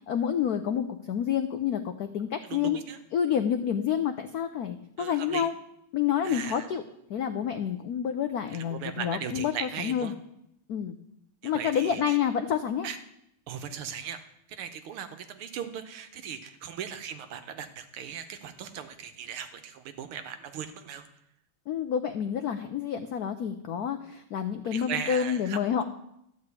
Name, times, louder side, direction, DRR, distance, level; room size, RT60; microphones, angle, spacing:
voice 1, 0.1-2.8 3.1-5.5 5.9-6.8 7.1-10.1 10.7-11.0 11.4-12.9 21.7-25.8, left 8 dB, 85° left, 8 dB, 0.8 m, -28 dB
voice 2, 2.5-3.0 5.0-5.5 6.2-6.6 8.5-10.1 11.4-12.2 12.8-13.0 13.5-14.2 14.6-21.0 24.7-25.6, right 8 dB, 80° right, 8 dB, 1.8 m, -38 dB
12.5 x 4.9 x 8.2 m, 0.78 s
omnidirectional pair, 2.4 m